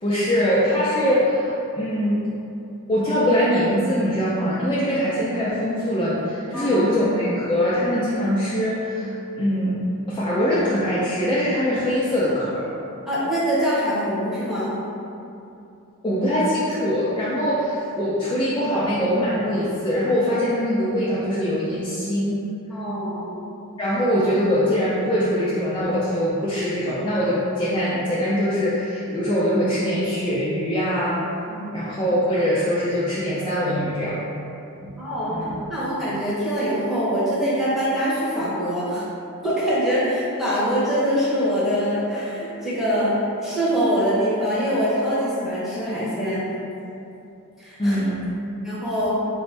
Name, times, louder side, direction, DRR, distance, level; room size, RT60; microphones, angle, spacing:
voice 1, 0.0-2.3 2.9-9.8 10.1-12.6 16.0-22.4 23.8-31.3 31.7-34.2 35.3-35.6 47.8-48.2, equal, 20° left, -9 dB, 0.4 m, -22 dB
voice 2, 13.1-14.8 22.7-23.3 31.5-31.7 35.0-35.4 35.7-39.0 39.4-43.2 43.4-46.4 47.6-48.0 48.6-49.1, equal, ahead, -10 dB, 0.9 m, -24 dB
4.0 x 2.6 x 3.3 m, 2.7 s
head